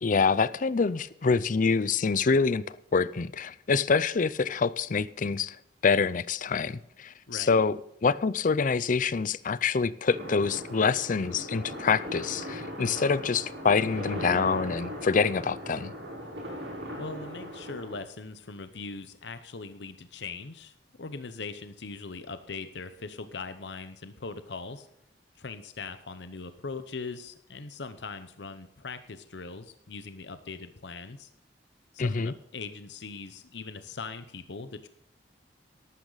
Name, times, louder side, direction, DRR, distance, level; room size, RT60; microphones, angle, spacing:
voice 1, 0.0-2.7 2.9-5.6 5.8-15.9 32.0-32.3, left 5 dB, 45° left, 0.5 m, -26 dB
sound 1, 10.1-18.0, equal, 85° right, 6.0 m, -38 dB
voice 2, 17.0-24.9 25.4-31.3 31.9-34.9, left 4 dB, 70° left, 0.8 m, -40 dB
13.5 x 12.5 x 4.0 m
head